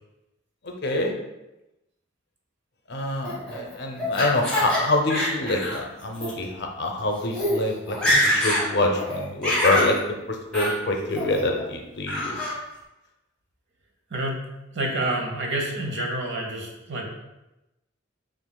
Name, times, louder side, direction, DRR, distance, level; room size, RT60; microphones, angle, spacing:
voice 1, 0.6-1.1 2.9-10.0 10.3-12.4, left 2 dB, 60° left, 2 dB, 0.6 m, -26 dB
Laughter, 3.2-4.8 5.1-5.8 6.1-6.3 7.0-7.1 7.3-7.6 7.9-8.6 9.0-9.9 10.5-10.7 11.1-11.6 12.1-12.5, equal, 5° left, 1.3 m, -25 dB
voice 2, 14.1-14.4 14.7-17.1, right 1 dB, 65° right, 0 dB, 0.9 m, -28 dB
7.1 x 2.5 x 2.2 m, 0.97 s
head